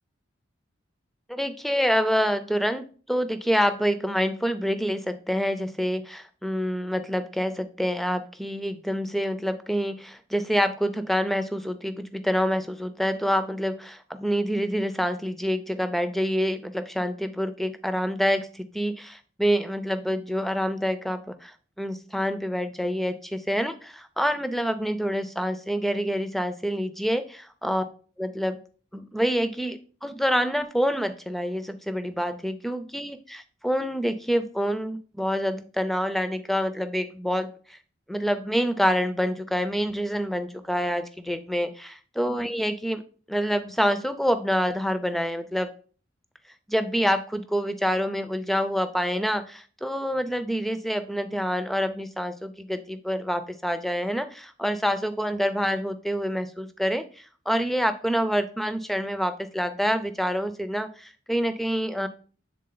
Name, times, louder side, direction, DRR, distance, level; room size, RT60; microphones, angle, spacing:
voice 1, 1.3-27.9 28.2-28.6 28.9-37.8 38.1-43.0 43.3-45.7 46.7-62.1, equal, ahead, 10 dB, 0.4 m, -27 dB
7.5 x 3.6 x 3.8 m, 0.41 s
head